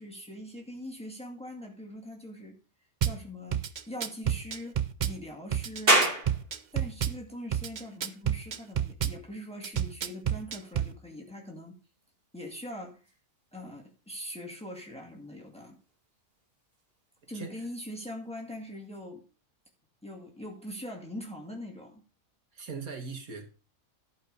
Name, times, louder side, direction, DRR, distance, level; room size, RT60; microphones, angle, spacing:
voice 1, 0.0-2.6 3.0-6.1 6.7-11.8 12.3-13.0 13.5-15.8 17.3-19.2 20.0-22.0, left 1 dB, 5° left, 1.9 m, -42 dB
Drum kit / Bass drum, 3.0-3.2 3.5-5.2 5.5-7.2 7.5-9.2 9.6-10.9, right 9 dB, 55° right, 0.5 m, -29 dB
sound 1, 5.9-19.0, right 1 dB, 40° right, 2.4 m, -36 dB
voice 2, 17.3-17.7 22.5-23.5, right 5 dB, 75° right, 2.1 m, -40 dB
11.5 x 5.2 x 5.2 m
omnidirectional pair, 1.5 m